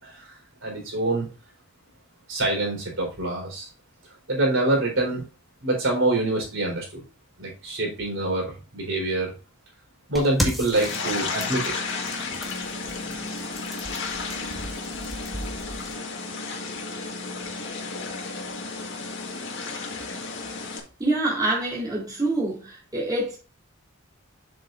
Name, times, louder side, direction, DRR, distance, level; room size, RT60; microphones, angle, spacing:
voice 1, 0.0-1.3 2.3-3.7 4.3-5.2 5.6-7.0 7.4-9.4 10.1-11.7, right 2 dB, 65° right, 4.2 m, -26 dB
sound 1, 10.1-15.9, equal, ahead, 2.0 m, -35 dB
sound 2, 10.7-20.8, left 4 dB, 65° left, 1.9 m, -33 dB
voice 2, 21.0-23.4, right 2 dB, 20° right, 3.5 m, -26 dB
7.9 x 7.4 x 2.5 m
head